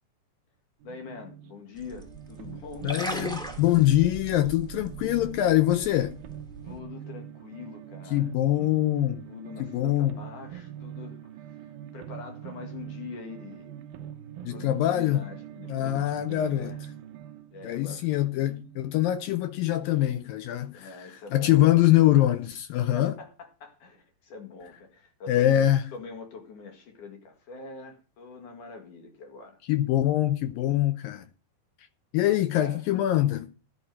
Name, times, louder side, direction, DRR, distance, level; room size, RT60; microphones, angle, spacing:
voice 1, 0.8-3.3 6.6-8.3 9.2-13.7 14.5-16.8 17.5-18.1 20.7-21.9 22.8-29.6 32.3-32.9, left 4 dB, 55° left, 3.2 m, -44 dB
sound 1, 0.8-19.9, right 10 dB, 70° right, 2.6 m, -43 dB
sound 2, 1.8-6.8, right 1 dB, ahead, 0.9 m, -39 dB
voice 2, 2.8-6.2 8.1-9.3 9.6-10.2 14.4-15.2 15.7-16.8 17.6-23.1 25.3-25.8 29.7-31.3 32.1-33.5, left 13 dB, 80° left, 2.0 m, -24 dB
11.5 x 7.1 x 7.5 m
omnidirectional pair, 4.9 m